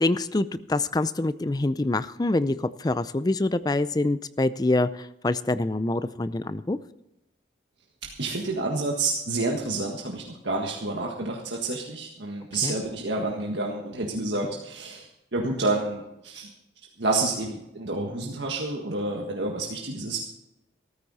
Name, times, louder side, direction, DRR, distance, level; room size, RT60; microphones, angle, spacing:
voice 1, 0.0-6.8 12.6-12.8, left 2 dB, 20° left, 14 dB, 0.4 m, -25 dB
voice 2, 8.0-16.5 17.0-20.2, right 2 dB, 75° right, 0 dB, 1.7 m, -29 dB
14.0 x 13.5 x 4.2 m, 0.88 s
head